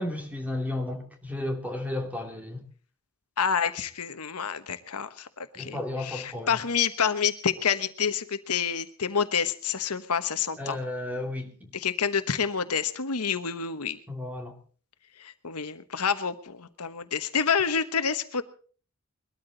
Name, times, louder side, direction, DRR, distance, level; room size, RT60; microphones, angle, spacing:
voice 1, 0.0-2.6 5.5-6.6 10.6-11.7 14.1-14.5, left 1 dB, 5° right, 3 dB, 2.6 m, -33 dB
voice 2, 3.4-10.8 11.7-14.0 15.2-18.4, left 6 dB, 90° left, 11 dB, 1.1 m, -28 dB
21.5 x 13.0 x 3.9 m, 0.42 s
head